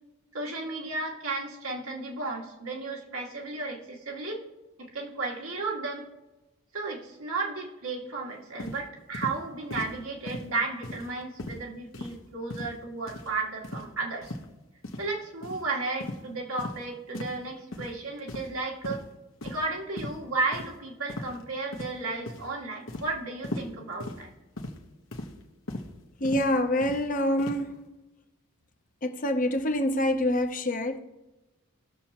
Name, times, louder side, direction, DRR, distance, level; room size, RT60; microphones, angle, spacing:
voice 1, 0.3-4.4 4.8-6.0 6.7-14.3 15.0-19.0 19.4-24.3, right 3 dB, 90° right, 2.2 m, -34 dB
sound 1, 8.6-8.8 9.1-9.4 9.7-9.9 10.3-10.5 10.8-11.1 11.4-11.6 11.9-12.2 12.5-12.8 13.1-13.3 13.6-13.9 14.2-14.4 14.8-15.0 15.4-15.6 16.0-16.2 16.6-16.8 17.1-17.4 17.7-17.9 18.3-18.6 18.8-19.0 19.4-19.7 20.0-20.2 20.5-20.7 21.1-21.4 21.7-22.0 22.3-22.5 22.9-23.1 23.4-23.7 24.0-24.2 24.6-24.8 25.1-25.3 25.7-25.9 26.2-26.5 26.8-27.0 27.4-27.6, left 1 dB, 65° left, 1.2 m, -37 dB
voice 2, 26.2-27.9 29.0-31.0, left 1 dB, 40° left, 0.8 m, -26 dB
19.0 x 7.0 x 3.0 m
head